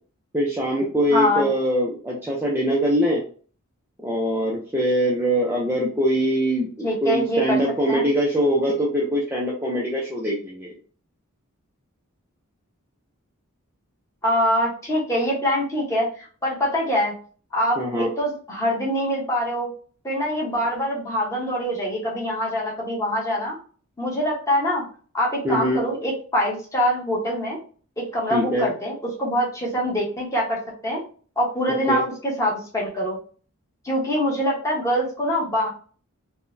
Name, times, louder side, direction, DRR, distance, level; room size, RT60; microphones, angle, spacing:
voice 1, 0.3-3.2 4.0-10.8 17.8-18.1 25.4-25.8 28.3-28.7 31.9-32.0, equal, 10° right, -4 dB, 0.5 m, -23 dB
voice 2, 1.1-1.5 6.8-7.6 7.9-8.1 14.2-17.2 17.5-19.7 20.0-23.6 24.0-24.8 25.1-27.6 28.0-31.0 31.4-33.2 33.8-35.7, equal, 15° left, -4 dB, 1.0 m, -24 dB
3.7 x 2.2 x 2.6 m, 0.41 s
head